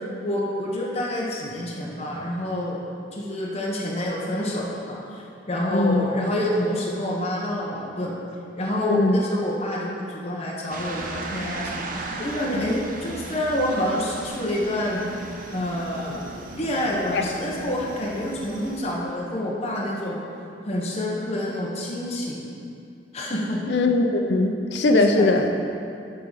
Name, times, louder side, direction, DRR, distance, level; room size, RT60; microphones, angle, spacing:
voice 1, 0.2-2.8 3.1-8.1 8.6-11.9 12.2-15.0 15.5-16.2 16.5-20.2 20.7-22.5 23.1-23.6 24.9-25.3, left 1 dB, 35° left, -4 dB, 1.1 m, -27 dB
voice 2, 5.7-6.1 8.9-9.2 12.5-12.6 17.1-17.3 23.7-25.5, left 2 dB, 70° left, 4 dB, 0.6 m, -20 dB
sound 1, 10.7-18.8, right 2 dB, 50° right, 0.7 m, -36 dB
11.0 x 3.8 x 5.6 m, 2.5 s
head